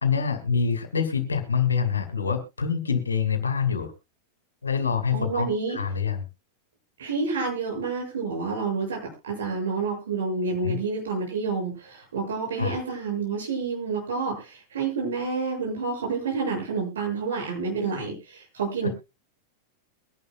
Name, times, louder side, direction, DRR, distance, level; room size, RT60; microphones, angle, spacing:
voice 1, 0.0-3.9 4.6-6.2 10.6-10.8 12.6-12.8, left 6 dB, 75° left, 7 dB, 2.5 m, -26 dB
voice 2, 5.1-5.8 7.0-18.9, right 4 dB, 65° right, 1 dB, 7.3 m, -29 dB
23.0 x 11.0 x 2.3 m, 0.27 s
figure-of-eight pair, 90°, 0 cm